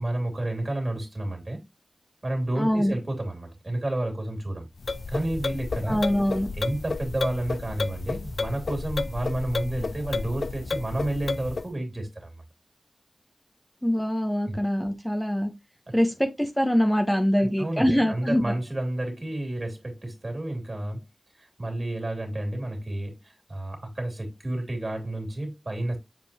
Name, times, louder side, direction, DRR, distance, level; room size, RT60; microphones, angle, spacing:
voice 1, 0.0-1.6 2.2-4.7 5.1-6.0 6.6-12.3 14.5-14.6 17.4-21.1 21.3-26.0, right 1 dB, 45° right, 2.8 m, -30 dB
voice 2, 2.6-2.9 5.9-6.5 13.8-15.5 15.9-18.5, equal, 5° left, 1.1 m, -24 dB
sound 1, 4.8-11.7, left 3 dB, 80° left, 0.4 m, -32 dB
7.6 x 4.5 x 2.9 m
wide cardioid pair, 50°, 0 cm